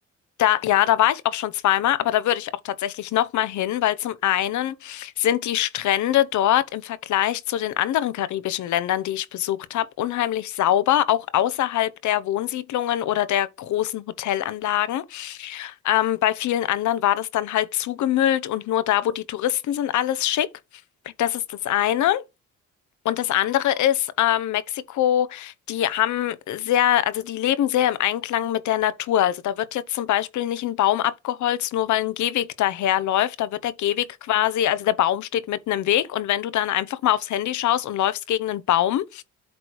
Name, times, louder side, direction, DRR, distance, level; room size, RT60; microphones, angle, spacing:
voice 1, 0.4-20.5 21.2-22.2 23.0-39.2, left 12 dB, 70° left, 0.7 m, -23 dB
8.4 x 3.1 x 4.5 m
cardioid pair, 90°, 30 cm